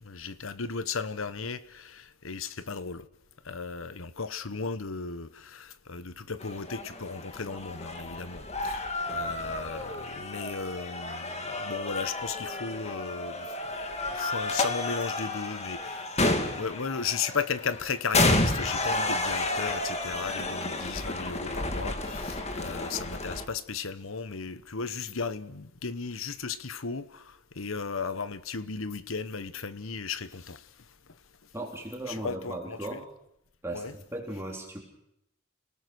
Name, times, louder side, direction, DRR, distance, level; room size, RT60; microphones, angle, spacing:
voice 1, 0.0-3.1 3.4-13.5 14.1-16.1 16.5-30.6 32.1-33.0 33.7-33.9, left 5 dB, 85° left, 1.1 m, -35 dB
sound 1, 6.4-23.5, left 2 dB, 35° left, 2.0 m, -31 dB
voice 2, 31.5-33.1 33.6-34.8, right 1 dB, 15° right, 3.8 m, -37 dB
29.0 x 18.5 x 6.3 m
head